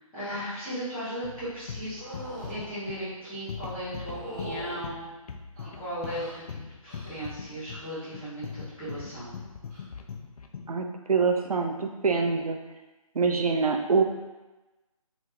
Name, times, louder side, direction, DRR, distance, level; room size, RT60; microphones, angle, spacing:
voice 1, 0.1-2.0 2.5-5.1 5.7-9.3, equal, 5° left, -20 dB, 0.5 m, -36 dB
sound 1, 1.2-10.8, left 6 dB, 85° left, 0.4 m, -41 dB
sound 2, 2.0-2.6 4.0-4.8 5.5-6.4 6.9-7.3 7.6-8.1 9.6-9.8, right 1 dB, 30° right, 0.9 m, -42 dB
voice 2, 10.7-12.6 13.1-14.0, right 4 dB, 85° right, 4 dB, 0.5 m, -25 dB
3.0 x 2.3 x 3.1 m, 1.1 s
figure-of-eight pair, 160°, 18 cm